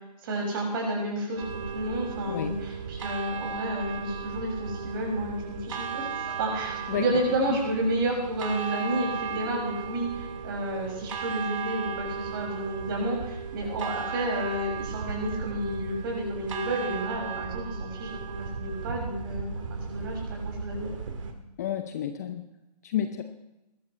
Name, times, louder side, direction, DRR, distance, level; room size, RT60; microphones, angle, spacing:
voice 1, 0.2-1.4 1.7-6.1 6.4-18.1 18.4-19.6 19.9-20.9, right 1 dB, 35° right, -1 dB, 6.2 m, -31 dB
sound 1, 1.4-21.3, right 6 dB, 50° right, 2.0 m, -36 dB
voice 2, 2.3-2.6 6.9-7.1 7.5-7.6 21.6-22.5 22.8-23.2, left 10 dB, 25° left, 8 dB, 0.6 m, -30 dB
21.0 x 12.5 x 3.3 m, 0.95 s
figure-of-eight pair, 145°, 21 cm